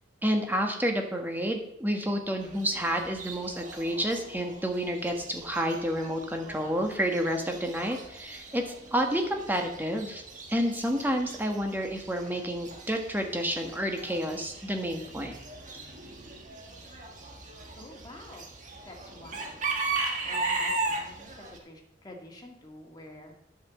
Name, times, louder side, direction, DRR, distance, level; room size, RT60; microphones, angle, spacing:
voice 1, 0.2-10.2 10.5-15.4, equal, 10° right, 3 dB, 1.4 m, -30 dB
Chicken rooster / Bird, 2.4-21.6, right 3 dB, 40° right, 1.7 m, -38 dB
voice 2, 17.8-18.5 18.9-19.6 20.3-23.3, left 1 dB, 20° left, 0 dB, 2.0 m, -48 dB
10.0 x 5.8 x 7.5 m, 0.76 s
head